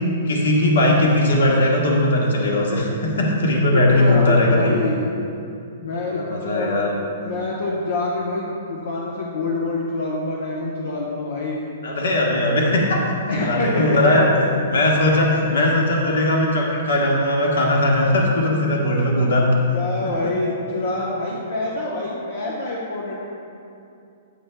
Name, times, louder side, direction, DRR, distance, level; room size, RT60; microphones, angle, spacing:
voice 1, 0.2-4.9 6.0-6.9 11.8-13.0 13.4-14.3 14.7-19.4, left 1 dB, 70° left, -1 dB, 1.1 m, -19 dB
voice 2, 3.7-5.1 5.8-6.8 7.2-11.7 13.3-14.3 15.0-15.2 19.7-23.1, left 2 dB, 85° left, -4 dB, 0.8 m, -26 dB
8.3 x 6.1 x 2.2 m, 2.5 s
hypercardioid pair, 180°, 0 cm